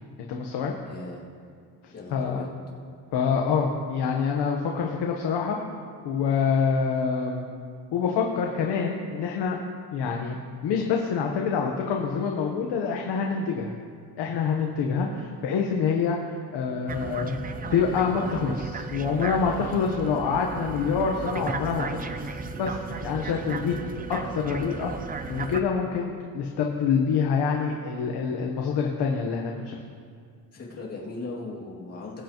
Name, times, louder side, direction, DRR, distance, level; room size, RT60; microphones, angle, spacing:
voice 1, 0.3-0.7 1.8-2.5 3.1-5.6 6.0-7.4 7.9-9.6 9.9-10.4 10.6-13.7 14.2-17.4 17.7-22.0 22.6-23.7 24.1-24.9 25.3-29.8, left 6 dB, 85° left, 1 dB, 1.1 m, -26 dB
voice 2, 0.8-1.3 1.9-2.5 21.7-22.0 30.5-32.2, left 3 dB, 40° left, -5 dB, 2.4 m, -38 dB
sound 1, 16.9-25.6, right 4 dB, 25° right, 0.4 m, -35 dB
21.0 x 7.9 x 3.0 m, 2.2 s
cardioid pair, 155°, 39 cm